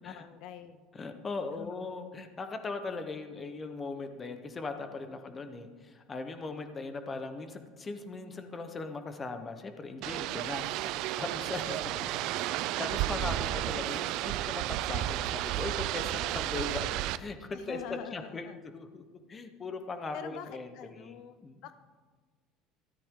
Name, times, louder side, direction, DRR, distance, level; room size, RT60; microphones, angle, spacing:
voice 1, 0.0-0.9 1.5-1.9 5.1-5.5 11.6-12.4 16.3-16.4 17.5-18.6 20.1-21.4 21.6-21.7, left 9 dB, 55° left, 11 dB, 0.5 m, -46 dB
voice 2, 1.0-11.8 12.5-18.5 18.7-19.0 19.3-21.5, left 3 dB, 20° left, 8 dB, 0.9 m, -39 dB
sound 1, 10.0-17.2, right 14 dB, 55° right, 0.4 m, -32 dB
13.5 x 13.0 x 3.7 m, 1.4 s
cardioid pair, 165°, 0 cm